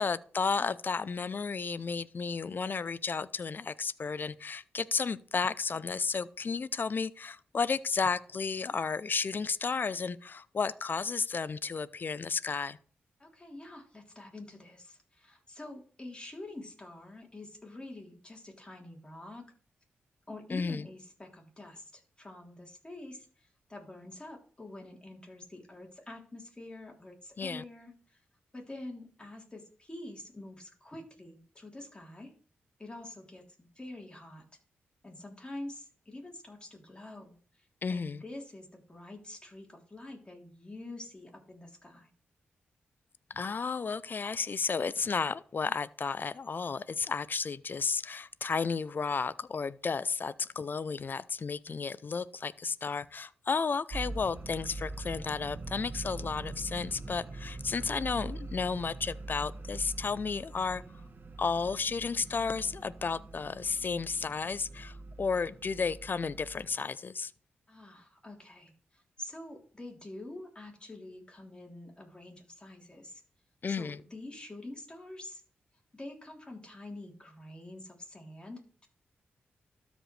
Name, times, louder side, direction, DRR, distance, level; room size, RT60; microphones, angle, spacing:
voice 1, 0.0-12.8 20.5-20.9 27.4-27.6 37.8-38.2 43.3-60.8 61.4-67.3 73.6-74.0, left 5 dB, 50° left, 0.5 m, -33 dB
voice 2, 13.2-19.5 20.3-28.2 28.5-32.3 32.8-34.4 35.0-42.1 67.7-73.2 73.7-75.4 75.9-78.9, left 1 dB, 20° left, 3.5 m, -46 dB
sound 1, 53.9-66.8, right 2 dB, 50° right, 1.1 m, -43 dB
13.0 x 5.1 x 3.2 m
cardioid pair, 55°, 4 cm